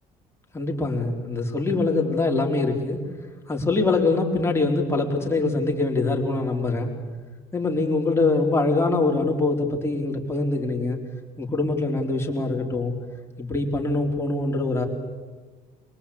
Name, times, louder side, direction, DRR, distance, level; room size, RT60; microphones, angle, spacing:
voice 1, 0.5-3.0 3.5-6.9 7.5-11.0 11.4-12.9 13.4-14.9, left 3 dB, 15° left, 1 dB, 4.1 m, -23 dB
23.5 x 23.0 x 8.6 m, 1.4 s
cardioid pair, 110°, 17 cm